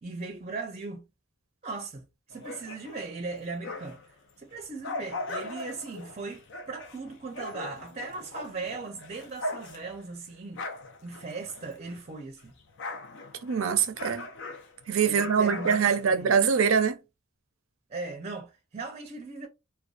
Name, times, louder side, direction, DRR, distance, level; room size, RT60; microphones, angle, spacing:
voice 1, 0.0-1.0 1.6-4.0 4.4-10.6 11.0-12.5 15.1-16.3 17.9-19.5, right 3 dB, 35° right, 0.5 m, -38 dB
sound 1, 2.3-4.1 4.5-12.1 12.4-16.6, left 2 dB, 65° left, 0.5 m, -40 dB
voice 2, 13.4-14.3 14.9-17.0, right 6 dB, 90° right, 0.5 m, -24 dB
2.5 x 2.2 x 2.3 m
head